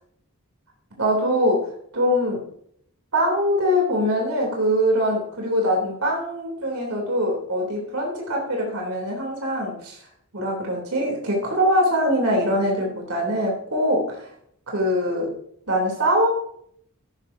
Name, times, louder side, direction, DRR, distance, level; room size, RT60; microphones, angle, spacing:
voice 1, 1.0-2.5 3.1-10.0 10.3-14.3 14.7-15.4 15.7-16.3, equal, 80° right, -1 dB, 3.4 m, -23 dB
13.0 x 11.0 x 2.8 m, 0.66 s
head